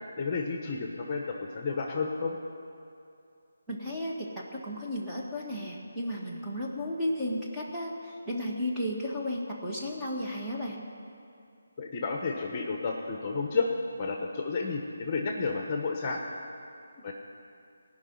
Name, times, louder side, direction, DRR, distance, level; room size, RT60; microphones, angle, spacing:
voice 1, 0.2-1.2 1.5-2.4 11.8-13.7 14.0-16.2 17.0-17.1, left 4 dB, 25° left, 1 dB, 1.2 m, -31 dB
voice 2, 3.7-10.9, left 1 dB, 5° right, -6 dB, 1.6 m, -34 dB
17.0 x 5.9 x 9.5 m, 2.5 s
figure-of-eight pair, 160°, 0 cm